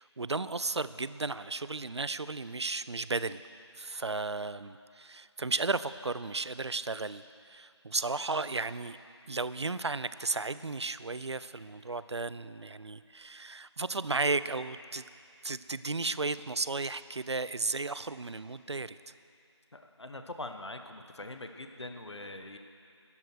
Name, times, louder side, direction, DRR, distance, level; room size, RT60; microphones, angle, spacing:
voice 1, 0.0-3.4 3.8-9.0 9.3-15.1 15.4-19.0, right 3 dB, 65° right, 15 dB, 0.5 m, -34 dB
voice 2, 19.7-22.6, left 2 dB, 65° left, 6 dB, 1.3 m, -43 dB
13.5 x 11.5 x 6.4 m, 2.4 s
figure-of-eight pair, 180°, 15 cm